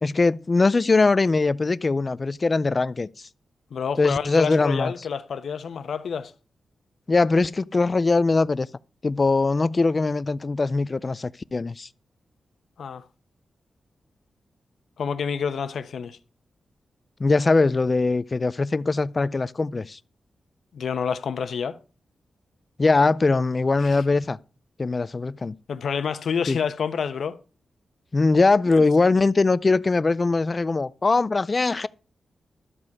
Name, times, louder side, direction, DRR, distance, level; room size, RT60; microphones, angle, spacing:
voice 1, 0.0-3.3 4.0-4.9 7.1-8.7 9.0-11.9 17.2-20.0 22.8-24.4 24.8-25.6 26.5-26.6 28.1-31.9, left 3 dB, 30° left, 0.4 m, -21 dB
voice 2, 3.7-6.3 12.8-13.0 15.0-16.2 20.7-21.8 23.8-24.0 25.7-27.4 28.7-28.8, left 6 dB, 75° left, 1.0 m, -28 dB
12.5 x 7.6 x 4.7 m
wide cardioid pair, 115°, 0 cm